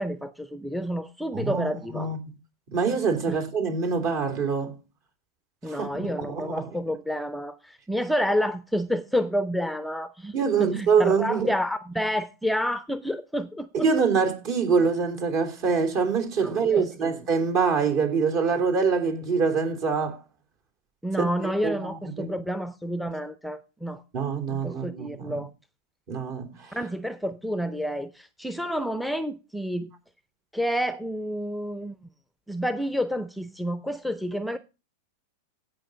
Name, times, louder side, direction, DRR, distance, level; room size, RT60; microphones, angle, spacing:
voice 1, 0.0-2.1 3.3-3.4 5.6-10.3 10.6-13.9 16.4-17.2 21.0-24.0 24.5-25.5 26.7-29.9 30.5-32.0 32.5-34.6, equal, ahead, 0.6 m, -29 dB
voice 2, 1.3-2.2 2.7-4.8 5.7-6.7 10.3-11.5 13.7-20.2 21.2-22.4 24.1-25.4 26.1-26.8, right 5 dB, 50° right, 3.3 m, -25 dB
16.5 x 5.7 x 3.9 m
hypercardioid pair, 100°, 0 cm